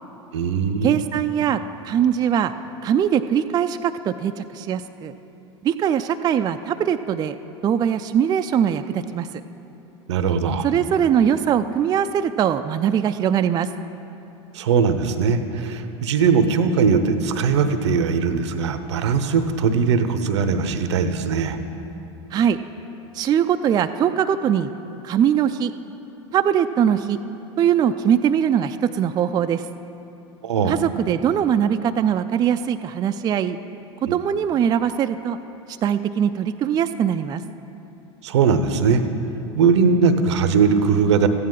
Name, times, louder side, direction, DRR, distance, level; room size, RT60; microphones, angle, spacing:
voice 1, 0.3-1.0 10.1-10.7 14.5-21.6 30.4-30.8 34.1-34.2 38.2-39.0 39.6-41.3, right 5 dB, 75° right, 10 dB, 0.7 m, -20 dB
voice 2, 0.8-2.5 2.8-5.1 5.6-7.4 7.6-9.3 10.6-13.7 22.3-22.6 23.1-24.7 25.0-25.7 26.3-27.2 27.6-29.7 30.7-33.6 34.0-35.4 35.8-37.4, right 9 dB, 25° right, 9 dB, 0.3 m, -21 dB
14.0 x 9.5 x 3.8 m, 2.9 s
hypercardioid pair, 85°, 15 cm